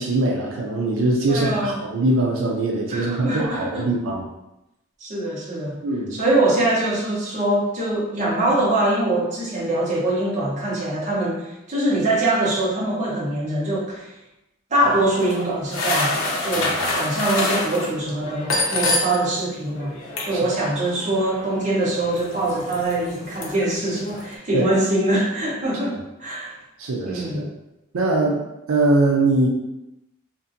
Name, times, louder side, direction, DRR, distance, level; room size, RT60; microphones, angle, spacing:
voice 1, 0.0-4.3 5.8-6.2 16.5-16.9 20.3-20.4 24.5-24.7 26.8-27.5 27.9-28.4 28.7-29.5, right 2 dB, 80° right, -1 dB, 0.5 m, -22 dB
voice 2, 1.3-1.8 2.9-3.8 5.0-5.8 6.1-14.1 14.7-20.0 20.2-26.6 27.0-27.4, right 1 dB, 35° right, -5 dB, 0.7 m, -23 dB
sound 1, 14.8-19.4 19.7-24.4, left 2 dB, 90° left, 0.6 m, -28 dB
2.6 x 2.4 x 2.6 m, 0.91 s
head